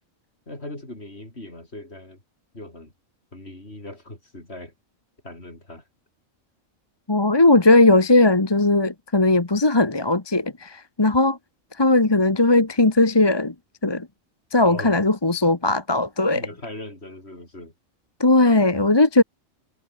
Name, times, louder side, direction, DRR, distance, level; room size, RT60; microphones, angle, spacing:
voice 1, 0.5-2.2 2.5-2.9 3.3-4.7 5.2-5.8 14.6-15.1 16.3-17.7, left 1 dB, 50° left, 6.7 m, -39 dB
voice 2, 7.1-11.4 11.8-13.5 13.8-14.1 14.5-16.5 18.2-19.2, left 2 dB, 20° left, 1.2 m, -18 dB
omnidirectional pair, 1.4 m